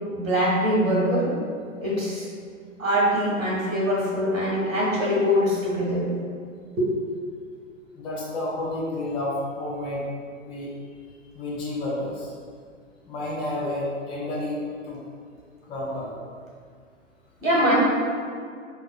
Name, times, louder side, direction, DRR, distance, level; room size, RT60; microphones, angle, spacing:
voice 1, 0.1-1.3 1.8-2.3 2.8-6.1 6.8-6.9 17.4-17.7, equal, 85° right, -5 dB, 1.4 m, -23 dB
voice 2, 7.9-10.0 10.4-10.7 11.3-12.3 13.1-15.0 15.7-16.1, left 1 dB, 15° left, -6 dB, 0.5 m, -30 dB
4.6 x 2.5 x 2.2 m, 2.1 s
figure-of-eight pair, 115°, 39 cm